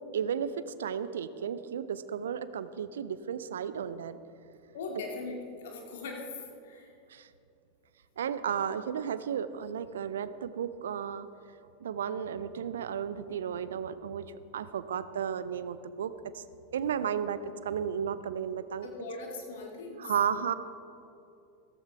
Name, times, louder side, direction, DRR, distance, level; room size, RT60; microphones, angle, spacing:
voice 1, 0.1-4.2 7.1-7.3 8.2-11.3 11.8-14.3 14.5-16.4 16.7-18.9 20.0-20.5, right 8 dB, 70° right, 14 dB, 0.5 m, -33 dB
voice 2, 4.7-6.9 18.8-20.0, left 3 dB, 65° left, 0 dB, 2.5 m, -40 dB
15.0 x 14.5 x 3.5 m, 2.6 s
figure-of-eight pair, 85°, 0 cm